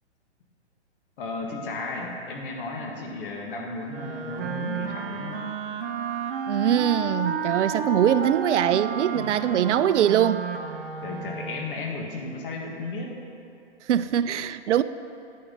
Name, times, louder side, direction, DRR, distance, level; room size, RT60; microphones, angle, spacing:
voice 1, 1.2-5.4 9.1-9.9 11.0-13.2, left 2 dB, 50° left, 0 dB, 1.7 m, -34 dB
Wind instrument woodwind instrument, 3.9-11.7, right 5 dB, 55° right, 0.9 m, -32 dB
voice 2, 6.5-10.4 13.9-14.8, right 10 dB, 80° right, 14 dB, 0.5 m, -22 dB
9.5 x 9.3 x 4.0 m, 2.5 s
hypercardioid pair, 145°, 35 cm